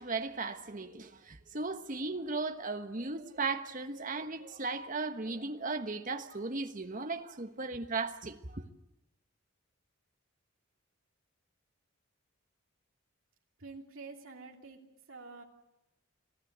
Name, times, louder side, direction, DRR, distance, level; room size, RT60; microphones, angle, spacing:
voice 1, 0.0-8.6, right 3 dB, 40° right, 1.2 m, -36 dB
voice 2, 13.6-15.4, right 3 dB, 70° right, 2.9 m, -48 dB
25.5 x 15.5 x 8.0 m
head